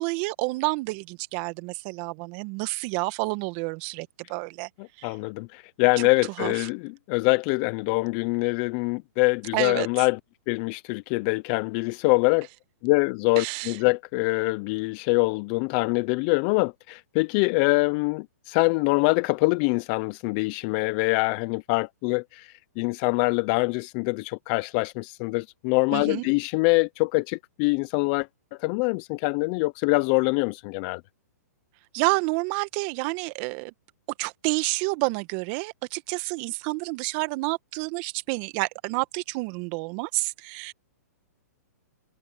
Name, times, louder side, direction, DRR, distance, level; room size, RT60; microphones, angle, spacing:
voice 1, 0.0-4.7 5.0-5.1 6.0-6.1 6.4-6.7 9.5-9.9 13.4-13.8 25.9-26.3 31.9-33.7 34.2-40.7, right 26 dB, 40° right, 1.6 m, -29 dB
voice 2, 4.8-10.2 10.5-12.5 12.8-28.3 28.6-31.0, left 27 dB, 35° left, 0.8 m, -24 dB
hypercardioid pair, 135°, 9 cm